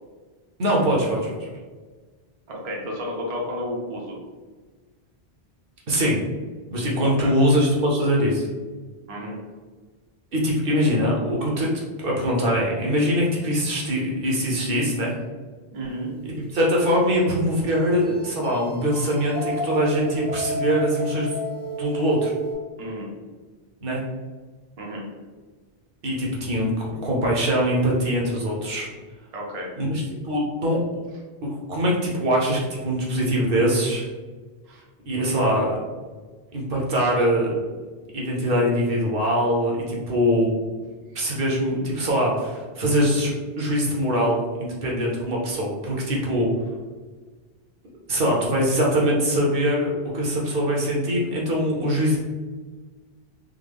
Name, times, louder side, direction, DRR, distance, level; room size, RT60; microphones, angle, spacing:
voice 1, 0.6-1.5 5.9-6.2 6.7-8.5 10.3-15.1 16.5-21.4 21.8-22.3 23.8-24.0 26.0-28.9 29.8-30.8 31.4-34.1 35.1-35.7 36.5-37.5 38.1-40.6 41.1-46.5 48.1-52.2, equal, 60° right, -3 dB, 0.9 m, -23 dB
voice 2, 2.5-4.2 7.0-7.3 9.1-9.4 15.7-16.1 22.8-23.1 24.8-25.1 29.3-29.7 34.6-34.8 35.2-35.3, equal, 40° right, -2 dB, 0.6 m, -32 dB
sound 1, 16.3-22.5, right 1 dB, 25° left, 0.8 m, -32 dB
3.6 x 2.0 x 3.3 m, 1.4 s
omnidirectional pair, 1.1 m